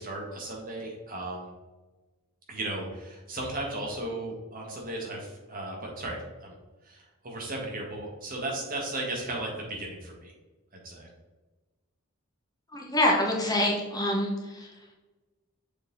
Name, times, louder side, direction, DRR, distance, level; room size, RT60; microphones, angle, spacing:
voice 1, 0.0-1.5 2.5-6.5 6.8-10.3 10.8-11.1, right 2 dB, 40° right, -1 dB, 1.6 m, -35 dB
voice 2, 12.7-14.7, left 1 dB, 15° left, -1 dB, 1.0 m, -26 dB
6.8 x 4.1 x 4.0 m, 1.2 s
head